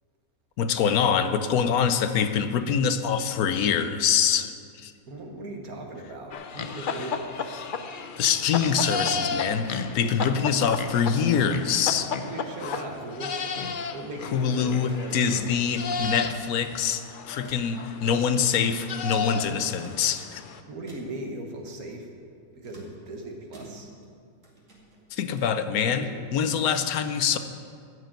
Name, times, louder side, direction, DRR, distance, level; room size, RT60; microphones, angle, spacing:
voice 1, 0.6-4.5 4.8-4.9 8.2-12.1 12.6-12.8 14.3-20.4 25.1-27.4, left 7 dB, 80° left, 10 dB, 1.2 m, -25 dB
voice 2, 5.1-7.4 10.3-10.5 12.2-13.4 13.9-15.9 19.4-19.6 20.6-22.1 22.5-23.9 26.0-26.2, right 2 dB, 80° right, 2 dB, 1.8 m, -38 dB
sound 1, 6.3-20.6, left 5 dB, 55° left, 0.6 m, -33 dB
sound 2, 14.5-16.6 16.9-17.9 18.2-18.5 19.6-20.4 20.9-21.4 22.6-24.1 24.4-25.6, right 1 dB, 60° right, 2.5 m, -51 dB
14.0 x 4.8 x 9.0 m, 2.2 s
omnidirectional pair, 1.5 m